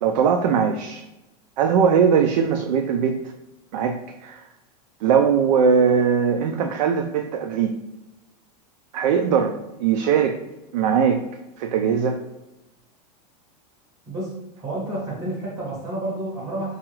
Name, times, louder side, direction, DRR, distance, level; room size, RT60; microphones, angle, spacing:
voice 1, 0.0-1.0 1.6-3.3 3.7-4.5 5.0-7.8 8.9-10.4 10.7-11.2 11.6-12.2, right 7 dB, 90° right, 6 dB, 0.4 m, -20 dB
voice 2, 14.1-16.8, right 1 dB, 15° right, -4 dB, 0.7 m, -30 dB
4.8 x 2.3 x 3.0 m, 0.97 s
supercardioid pair, 180°, 21 cm